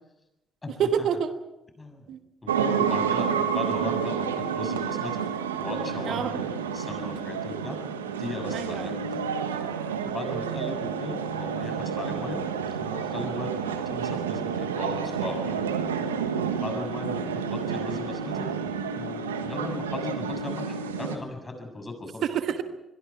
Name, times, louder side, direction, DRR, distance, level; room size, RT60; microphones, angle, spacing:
voice 1, 0.8-1.3 2.1-2.2 6.0-6.4 8.5-9.0 22.2-22.6, right 8 dB, 65° right, 10 dB, 1.3 m, -27 dB
voice 2, 1.8-2.1 2.4-5.3 5.6-7.8 8.2-9.2 10.1-12.5 12.8-15.6 16.6-18.5 18.9-22.2, left 2 dB, 30° left, 5 dB, 7.0 m, -37 dB
sound 1, 2.5-21.2, right 7 dB, 90° right, 1.3 m, -30 dB
25.5 x 22.0 x 4.7 m, 0.93 s
hypercardioid pair, 45°, 0 cm